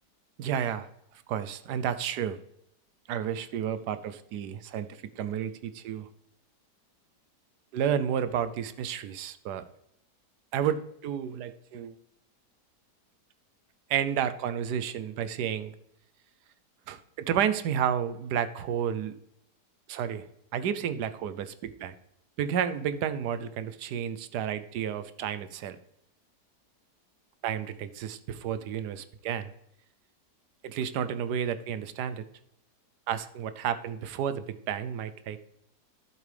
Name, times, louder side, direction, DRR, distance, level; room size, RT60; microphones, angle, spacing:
voice 1, 0.4-0.9 1.3-2.4 3.1-6.1 7.7-9.6 10.5-12.0 13.9-15.7 16.9-19.1 19.9-20.2 20.5-21.9 22.4-25.8 27.4-29.5 30.6-32.3 33.1-35.4, right 8 dB, 80° right, 12 dB, 1.2 m, -31 dB
12.0 x 7.3 x 3.4 m, 0.78 s
omnidirectional pair, 1.8 m